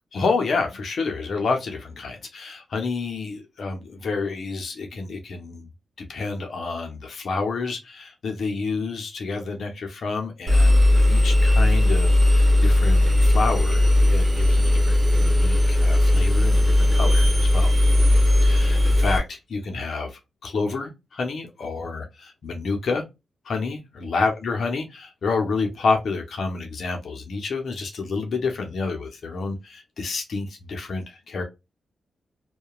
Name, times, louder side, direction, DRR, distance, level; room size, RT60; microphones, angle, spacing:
voice 1, 0.1-5.7 6.0-17.7 18.4-23.0 23.4-31.4, left 4 dB, 70° left, 0.6 m, -29 dB
Engine, 10.5-19.2, left 1 dB, 30° right, 1.1 m, -17 dB
2.8 x 2.2 x 2.2 m
supercardioid pair, 50°, 0 cm